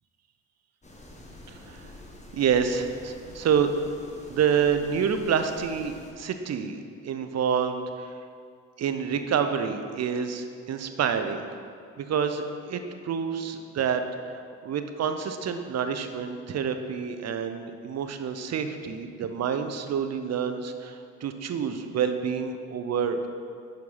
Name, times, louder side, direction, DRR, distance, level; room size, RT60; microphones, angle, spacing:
sound 1, 0.8-6.1, left 1 dB, 15° left, 1.2 m, -47 dB
voice 1, 1.5-1.9 2.3-3.7 4.3-8.1 8.8-11.4 12.0-23.3, right 7 dB, 40° right, 8 dB, 0.7 m, -28 dB
6.4 x 4.7 x 5.4 m, 2.3 s
supercardioid pair, 70°, 40 cm